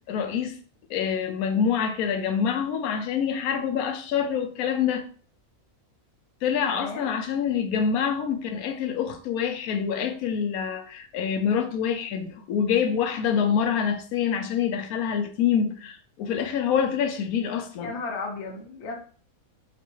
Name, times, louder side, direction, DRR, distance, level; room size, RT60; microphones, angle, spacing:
voice 1, 0.1-0.6 0.9-5.0 6.4-17.9, left 7 dB, 80° left, 1.0 m, -26 dB
voice 2, 6.7-7.1 17.8-18.9, left 3 dB, 55° left, 1.1 m, -34 dB
3.0 x 2.5 x 4.4 m
omnidirectional pair, 1.6 m